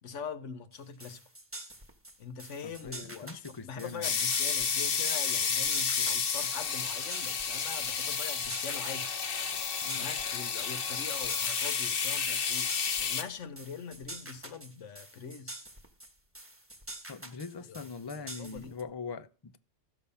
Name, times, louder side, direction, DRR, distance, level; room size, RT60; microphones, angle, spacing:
voice 1, 0.0-1.2 2.2-9.1 9.9-15.6 17.5-18.8, left 6 dB, 75° left, 1.3 m, -43 dB
sound 1, 0.7-18.8, right 1 dB, 10° right, 1.2 m, -47 dB
voice 2, 2.8-4.2 5.5-5.6 9.8-10.0 17.1-19.6, left 5 dB, 30° left, 0.4 m, -42 dB
sound 2, 4.0-13.2, left 6 dB, 50° left, 1.1 m, -31 dB
13.5 x 7.0 x 5.5 m
omnidirectional pair, 1.3 m